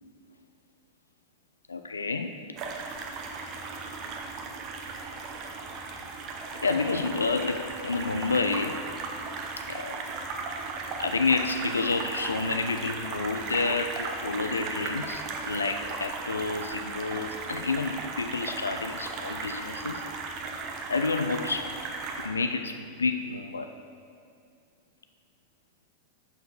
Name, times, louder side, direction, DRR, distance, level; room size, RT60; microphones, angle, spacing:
voice 1, 1.7-2.4 6.6-8.8 9.7-10.0 11.0-20.0 20.9-21.8 22.1-23.7, left 4 dB, 75° left, 7 dB, 0.3 m, -29 dB
sound 1, 2.6-22.3, right 4 dB, 40° right, 0.8 m, -36 dB
6.5 x 5.9 x 4.7 m, 2.4 s
figure-of-eight pair, 90°, 0 cm